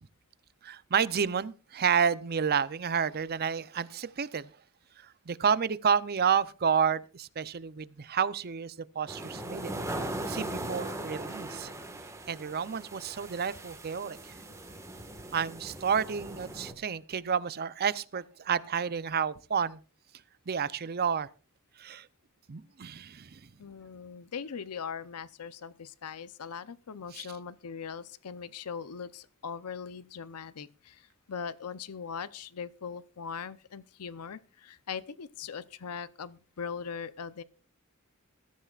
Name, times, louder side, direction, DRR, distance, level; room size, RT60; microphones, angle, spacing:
voice 1, 0.6-4.5 5.0-9.7 10.3-11.7 12.3-14.3 15.3-19.8 20.5-21.3 21.8-22.1 22.5-23.5 27.1-27.3, right 7 dB, 45° right, 0.6 m, -30 dB
sound 1, 9.1-16.7, right 1 dB, 15° right, 1.5 m, -39 dB
voice 2, 23.6-37.4, left 6 dB, 90° left, 0.7 m, -40 dB
20.5 x 13.5 x 2.4 m
head